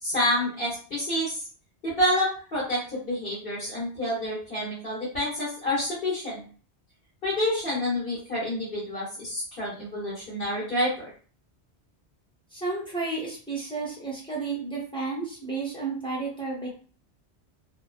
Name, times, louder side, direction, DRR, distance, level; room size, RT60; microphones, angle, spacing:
voice 1, 0.0-1.5 1.8-6.4 7.2-11.1, left 1 dB, 55° left, -8 dB, 1.2 m, -28 dB
voice 2, 12.5-16.7, right 4 dB, 5° left, -4 dB, 0.6 m, -32 dB
2.6 x 2.1 x 2.4 m, 0.41 s
omnidirectional pair, 1.1 m